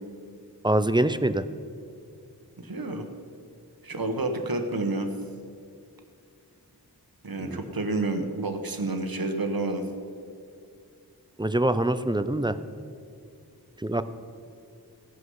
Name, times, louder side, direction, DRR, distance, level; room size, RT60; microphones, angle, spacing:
voice 1, 0.6-1.4 7.4-7.6 11.4-12.6 13.8-14.0, right 1 dB, 10° right, 12 dB, 0.5 m, -24 dB
voice 2, 2.6-3.1 3.8-5.1 7.2-9.9, right 2 dB, 60° right, 6 dB, 1.2 m, -29 dB
17.0 x 6.3 x 5.5 m, 2.3 s
wide cardioid pair, 50°, 39 cm